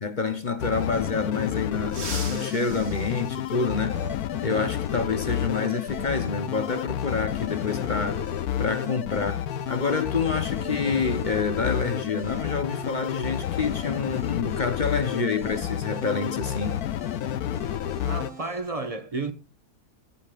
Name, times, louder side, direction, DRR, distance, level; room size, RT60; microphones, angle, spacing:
voice 1, 0.0-4.0 4.4-8.2 8.6-16.8, left 4 dB, 40° left, 0.8 m, -28 dB
sound 1, 0.6-18.3, left 11 dB, 75° left, 1.1 m, -30 dB
sound 2, 1.8-4.3 5.9-6.0 7.2-7.3 9.0-9.1 9.5-9.7 10.2-12.3 12.6-12.9 13.3-13.7, right 4 dB, 45° right, 1.6 m, -42 dB
sound 3, 3.6-18.6, right 2 dB, 60° right, 3.5 m, -44 dB
voice 2, 18.0-19.3, right 3 dB, 25° right, 1.2 m, -31 dB
17.5 x 8.7 x 2.4 m
omnidirectional pair, 1.7 m